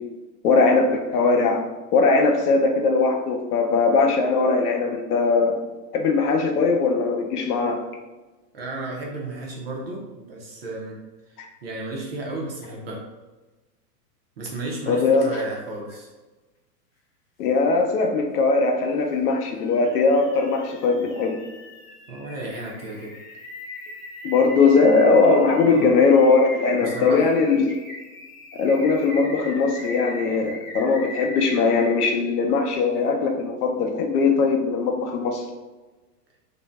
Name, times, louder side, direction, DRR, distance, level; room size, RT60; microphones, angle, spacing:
voice 1, 0.4-1.6 1.9-5.6 5.9-7.8 14.9-15.3 17.4-21.3 24.2-27.7 28.5-35.5, left 4 dB, 65° left, 3 dB, 0.7 m, -20 dB
voice 2, 8.5-13.0 14.4-16.1 22.1-23.1 25.7-25.9 26.8-27.3, right 2 dB, 40° right, -2 dB, 0.4 m, -34 dB
sound 1, 15.9-16.0 19.3-32.2, equal, 35° left, 0.8 m, -39 dB
2.6 x 2.1 x 3.2 m, 1.2 s
supercardioid pair, 160°, 49 cm